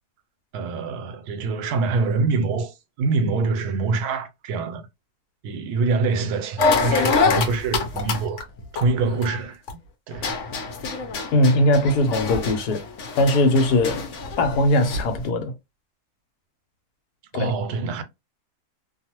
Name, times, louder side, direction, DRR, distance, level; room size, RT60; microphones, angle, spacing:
voice 1, 0.5-4.9 5.4-8.4 8.7-9.6 10.1-10.4 17.3-18.0, right 4 dB, 85° right, 1.1 m, -25 dB
sound 1, 6.6-9.7 10.1-15.2, left 4 dB, 60° left, 0.9 m, -25 dB
voice 2, 11.3-12.8 13.2-14.1 14.4-15.5 17.3-17.5, left 1 dB, 90° left, 1.3 m, -20 dB
2.6 x 2.4 x 2.9 m
omnidirectional pair, 1.6 m